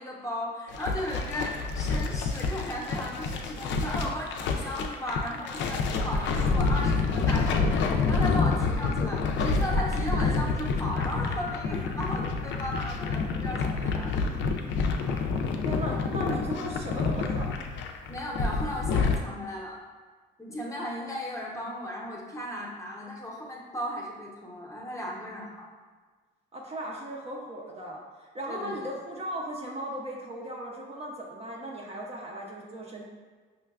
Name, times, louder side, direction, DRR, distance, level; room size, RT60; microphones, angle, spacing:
voice 1, 0.0-14.4 15.0-15.2 18.1-19.8 20.4-25.7 28.5-28.9, equal, 15° left, -3 dB, 0.7 m, -36 dB
sound 1, 0.7-19.2, left 4 dB, 70° left, 0.4 m, -28 dB
voice 2, 15.6-17.5 26.5-28.0 28.3-33.0, right 1 dB, 30° right, -2 dB, 0.5 m, -37 dB
5.5 x 2.2 x 2.3 m, 1.5 s
cardioid pair, 100°, 20 cm